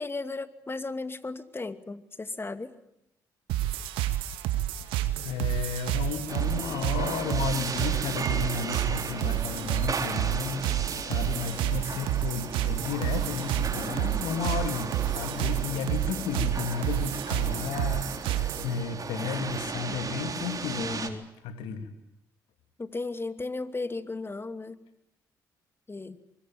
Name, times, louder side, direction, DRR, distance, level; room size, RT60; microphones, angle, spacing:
voice 1, 0.0-2.7 20.8-21.3 22.8-24.8 25.9-26.2, left 3 dB, 25° left, 12 dB, 2.5 m, -35 dB
sound 1, 3.5-18.7, right 13 dB, 80° right, 2.1 m, -30 dB
voice 2, 5.2-21.2 21.4-21.9, left 6 dB, 80° left, 8 dB, 2.8 m, -33 dB
sound 2, 6.3-21.1, right 5 dB, 45° right, 3.9 m, -36 dB
24.5 x 21.5 x 9.1 m, 0.85 s
hypercardioid pair, 50°, 9 cm